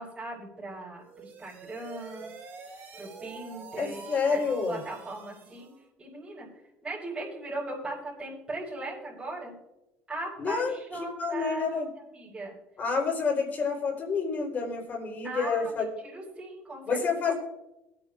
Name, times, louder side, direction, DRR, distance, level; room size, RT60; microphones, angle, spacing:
voice 1, 0.0-2.3 3.0-5.7 6.0-6.5 6.8-9.6 10.1-11.8 12.1-12.6 15.2-17.0, right 2 dB, 20° right, -8 dB, 5.1 m, -39 dB
sound 1, 1.0-5.8, right 5 dB, 55° right, 2.5 m, -47 dB
voice 2, 3.8-4.8 10.4-10.7 11.2-11.9 12.8-15.9 16.8-17.3, left 5 dB, 40° left, 1 dB, 4.0 m, -28 dB
22.5 x 9.0 x 2.5 m, 0.93 s
supercardioid pair, 100°, 4 cm